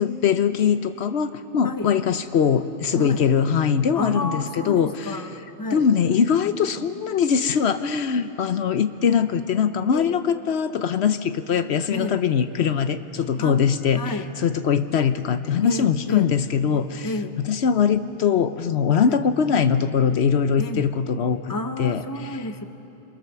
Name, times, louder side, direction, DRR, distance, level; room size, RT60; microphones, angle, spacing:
voice 1, 0.0-5.2 5.7-21.5 21.8-22.4, left 7 dB, 75° left, 10 dB, 1.0 m, -22 dB
voice 2, 3.0-3.3 3.9-5.9 9.9-10.2 11.9-12.2 13.4-13.6 13.9-14.3 15.6-16.4 17.0-17.4 19.0-19.2 20.6-20.9 21.5-22.7, left 2 dB, 20° left, 7 dB, 1.0 m, -31 dB
27.0 x 23.0 x 6.9 m, 2.9 s
omnidirectional pair, 1.1 m